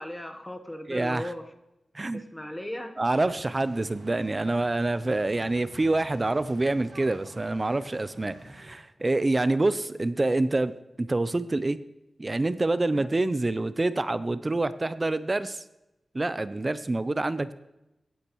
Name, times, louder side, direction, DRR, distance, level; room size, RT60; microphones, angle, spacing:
voice 1, 0.0-1.5 2.1-3.0 12.9-13.1, left 1 dB, 15° left, 7 dB, 1.1 m, -37 dB
voice 2, 0.9-1.3 1.9-2.2 3.0-10.7 11.0-11.8 12.2-15.6 16.1-17.5, right 2 dB, 35° right, 14 dB, 0.5 m, -26 dB
sound 1, 3.0-8.8, right 2 dB, 75° right, 2.0 m, -49 dB
16.5 x 8.5 x 3.1 m, 0.93 s
cardioid pair, 65°, 0 cm